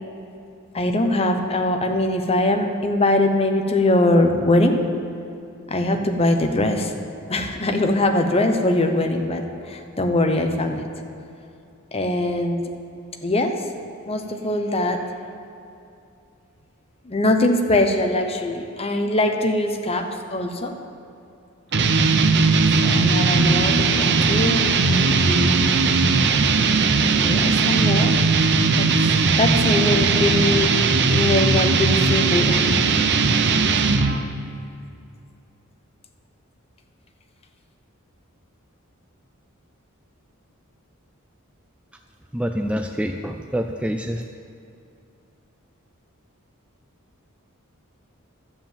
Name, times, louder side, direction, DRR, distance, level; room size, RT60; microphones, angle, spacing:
voice 1, 0.7-4.8 5.7-6.9 7.3-10.9 11.9-12.7 13.2-13.5 14.1-15.0 17.1-20.8 22.8-24.7 25.0-25.8 27.1-28.2 28.8-28.9 29.4-32.9, left 1 dB, 30° left, 4 dB, 0.9 m, -22 dB
sound 1, 21.7-34.2, right 4 dB, 55° right, 0.7 m, -18 dB
voice 2, 42.3-44.2, equal, 5° right, 4 dB, 0.4 m, -26 dB
12.0 x 7.4 x 7.4 m, 2.6 s
head